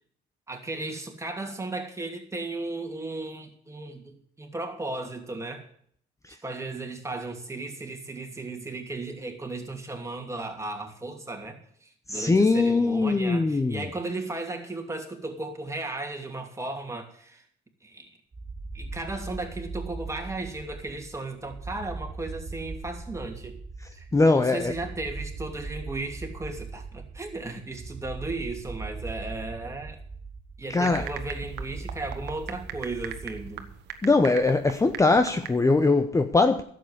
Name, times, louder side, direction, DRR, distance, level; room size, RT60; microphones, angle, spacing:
voice 1, 0.5-5.7 6.4-17.4 17.8-18.1 18.7-23.6 23.9-30.0 30.6-33.7, right 2 dB, 15° right, 2.8 m, -35 dB
voice 2, 12.1-13.8 24.1-24.7 30.7-31.1 34.0-36.6, left 3 dB, 20° left, 0.8 m, -21 dB
sound 1, 18.3-33.9, right 3 dB, 35° right, 1.4 m, -40 dB
sound 2, 30.6-35.5, right 11 dB, 80° right, 1.3 m, -41 dB
11.5 x 7.8 x 8.1 m
cardioid pair, 85°, 17 cm